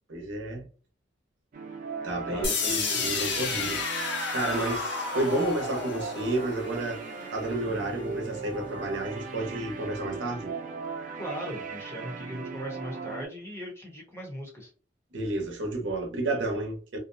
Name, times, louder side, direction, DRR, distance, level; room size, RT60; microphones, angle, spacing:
voice 1, 0.1-0.7 2.0-7.0 7.3-10.5 15.1-17.0, right 2 dB, 70° right, 0.7 m, -31 dB
sound 1, 1.5-13.3, right 5 dB, 40° right, 0.3 m, -39 dB
voice 2, 2.3-3.0 11.1-14.7, equal, 15° left, 0.7 m, -39 dB
sound 2, 2.4-8.4, left 4 dB, 65° left, 0.7 m, -32 dB
2.5 x 2.0 x 2.6 m
head